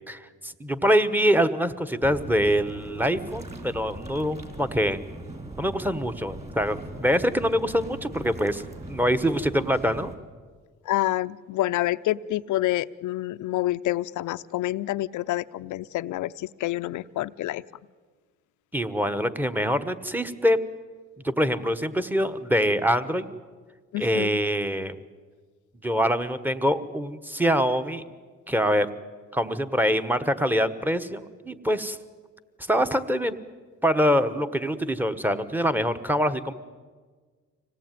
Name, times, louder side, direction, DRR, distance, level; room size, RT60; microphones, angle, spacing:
voice 1, 0.1-5.0 5.6-8.6 8.9-10.1 18.7-20.6 21.2-23.3 24.0-24.9 25.8-28.0 28.5-28.9 29.3-32.0 32.7-33.3 33.8-36.5, equal, 5° right, 10 dB, 1.3 m, -24 dB
sound 1, 2.0-10.1, right 2 dB, 20° right, 3.8 m, -40 dB
voice 2, 10.8-17.6 23.9-24.4, left 15 dB, 75° left, 14 dB, 0.7 m, -28 dB
25.5 x 18.0 x 9.2 m, 1.5 s
cardioid pair, 90°, 30 cm